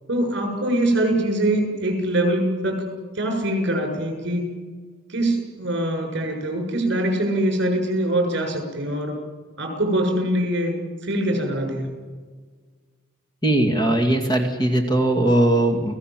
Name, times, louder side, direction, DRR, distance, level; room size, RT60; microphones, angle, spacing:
voice 1, 0.1-2.9 3.1-4.5 5.1-9.2 9.6-10.8 11.0-11.9, right 1 dB, 55° right, 4 dB, 6.8 m, -23 dB
voice 2, 13.4-16.0, right 1 dB, 20° left, 4 dB, 2.2 m, -19 dB
29.5 x 18.5 x 7.7 m, 1.5 s
head